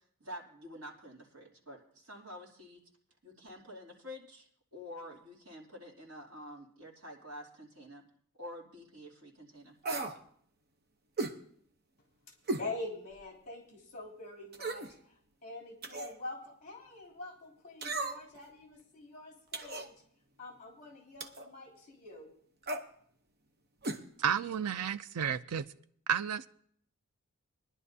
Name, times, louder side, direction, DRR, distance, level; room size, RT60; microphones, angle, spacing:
voice 1, 0.2-2.8 3.2-8.0 8.4-9.7, equal, 70° right, 2.8 m, -48 dB
sound 1, 9.8-10.2 11.2-11.4 12.5-12.7 13.2-13.3 14.5-14.9 15.8-16.2 17.8-18.4 19.5-19.9 21.2-21.5 22.6-22.9 23.8-24.0 24.3-24.4, right 2 dB, 45° right, 0.9 m, -36 dB
voice 2, 12.6-15.1 15.4-19.9 20.4-22.3, left 2 dB, 35° left, 3.2 m, -45 dB
voice 3, 24.2-25.7 26.1-26.5, right 8 dB, 90° right, 0.5 m, -31 dB
22.0 x 11.0 x 2.8 m
head